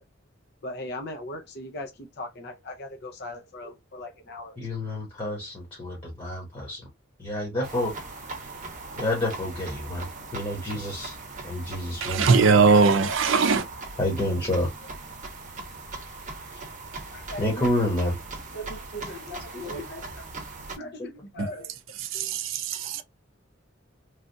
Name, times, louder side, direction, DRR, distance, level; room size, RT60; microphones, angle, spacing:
voice 1, 0.6-4.6 16.5-16.7 17.1-17.9 18.5-20.3 20.8-21.7 22.1-22.3 22.7-23.0, left 1 dB, 55° left, 0.6 m, -39 dB
voice 2, 4.6-6.8 7.2-7.9 9.0-10.0 10.3-11.2 11.4-12.3 14.0-14.7 17.4-18.2, left 1 dB, 25° left, 1.1 m, -28 dB
sound 1, 7.6-20.8, right 3 dB, 40° right, 1.0 m, -40 dB
voice 3, 12.0-13.6 22.1-23.0, right 4 dB, 75° right, 0.5 m, -20 dB
3.2 x 2.3 x 2.6 m
head